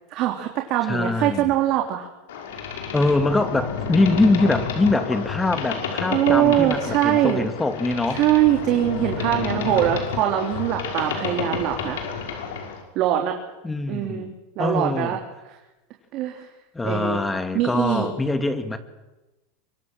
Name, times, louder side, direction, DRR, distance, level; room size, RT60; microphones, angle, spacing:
voice 1, 0.1-2.1 6.1-7.5 8.1-12.0 12.9-13.4 13.9-14.3 14.6-15.2 15.5-15.6 16.1-16.5 16.8-17.2 17.5-18.1, right 12 dB, 50° right, 3 dB, 3.2 m, -22 dB
voice 2, 0.9-1.5 2.9-8.2 13.6-14.3 14.6-15.2 16.7-18.8, left 2 dB, 10° left, 9 dB, 2.1 m, -23 dB
Boat Water vehicle, 2.3-12.8, left 6 dB, 85° left, 6.0 m, -30 dB
24.5 x 23.0 x 7.6 m, 1.1 s
supercardioid pair, 125°, 0 cm